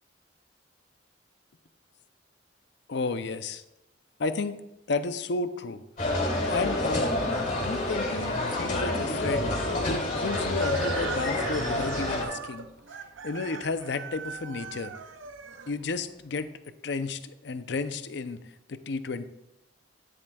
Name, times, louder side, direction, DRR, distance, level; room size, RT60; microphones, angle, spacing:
voice 1, 2.9-3.6 4.2-4.6 4.9-5.8 6.4-7.1 7.6-9.5 9.9-12.7 13.2-14.9 15.7-16.5 16.8-18.4 18.7-19.3, left 3 dB, 65° left, 11 dB, 0.6 m, -32 dB
sound 1, 6.0-12.2, left 2 dB, 40° left, 2.7 m, -28 dB
Chicken rooster, 10.2-16.2, right 6 dB, 85° right, 0.6 m, -39 dB
12.0 x 10.0 x 2.3 m, 0.90 s
head